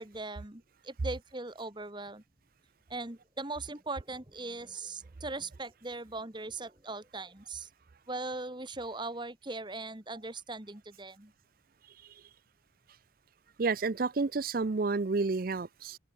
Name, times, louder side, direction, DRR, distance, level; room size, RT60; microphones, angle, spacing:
voice 1, 0.0-2.2 2.9-7.7 8.1-11.3, right 2 dB, 25° right, 1.6 m, -40 dB
voice 2, 13.6-16.0, right 4 dB, 50° right, 0.5 m, -30 dB
open air
head